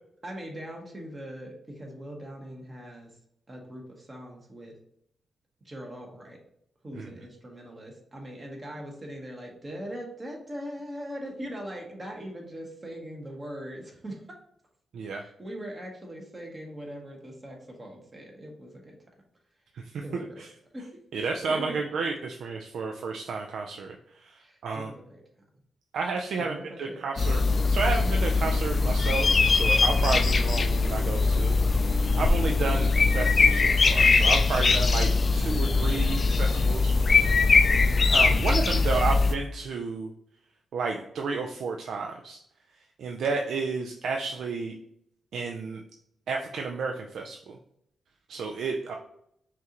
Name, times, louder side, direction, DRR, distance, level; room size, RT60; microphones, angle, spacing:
voice 1, 0.2-3.1 3.5-4.8 5.6-6.4 6.8-14.2 15.2-19.0 20.0-20.4 20.7-20.9 21.5-21.8 24.4-25.2 26.4-27.0, equal, 25° right, 0 dB, 1.1 m, -41 dB
voice 2, 14.9-15.2 19.8-20.5 21.1-24.9 25.9-27.4 27.7-36.9 38.1-40.1 40.7-42.4 43.0-44.7 45.3-45.8 46.3-47.6 48.3-49.0, right 4 dB, 80° right, 2 dB, 0.4 m, -32 dB
sound 1, 27.2-39.3, left 4 dB, 40° left, 0.3 m, -22 dB
5.6 x 2.5 x 2.9 m, 0.74 s
wide cardioid pair, 125°, 0 cm